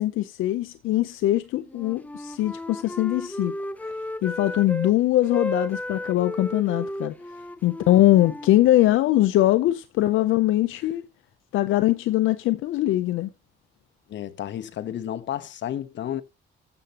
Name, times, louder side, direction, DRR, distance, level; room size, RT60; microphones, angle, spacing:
voice 1, 0.0-3.9 4.2-7.2 7.6-11.0 11.5-13.3, left 15 dB, 85° left, 0.6 m, -22 dB
Wind instrument woodwind instrument, 1.6-4.9 5.2-9.0, left 1 dB, 5° left, 0.7 m, -34 dB
voice 2, 14.1-16.2, left 11 dB, 65° left, 1.0 m, -32 dB
12.5 x 7.9 x 2.9 m
cardioid pair, 90°, 20 cm